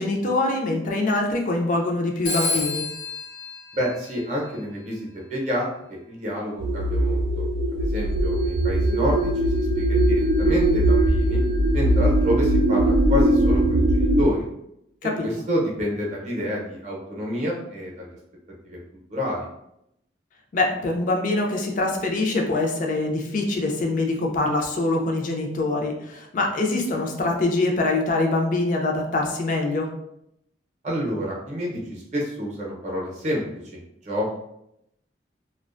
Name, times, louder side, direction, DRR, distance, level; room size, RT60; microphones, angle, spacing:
voice 1, 0.0-2.8 15.0-15.3 20.5-29.9, left 2 dB, 45° left, 1 dB, 0.4 m, -24 dB
Telephone, 2.2-4.7, left 2 dB, 80° left, 1.0 m, -30 dB
voice 2, 3.7-7.4 7.8-11.4 11.7-14.4 15.2-18.1 18.6-18.8 19.1-19.5 30.8-33.4 33.7-34.4, equal, 40° right, -3 dB, 0.6 m, -28 dB
sound 1, 6.6-14.2, right 1 dB, 80° right, 0.3 m, -20 dB
2.4 x 2.1 x 2.4 m, 0.79 s
head